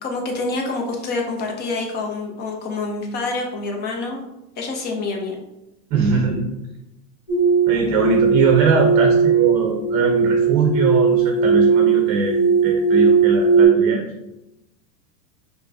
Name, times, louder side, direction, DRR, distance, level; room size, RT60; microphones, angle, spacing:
voice 1, 0.0-4.2 4.6-5.4, left 3 dB, 20° left, 1 dB, 0.5 m, -27 dB
voice 2, 5.9-6.5 7.7-12.4 12.6-14.0, right 4 dB, 40° right, 1 dB, 0.7 m, -21 dB
sound 1, 7.3-13.7, right 5 dB, 50° left, 1.4 m, -17 dB
5.0 x 2.1 x 2.7 m, 0.92 s
hypercardioid pair, 115°, 48 cm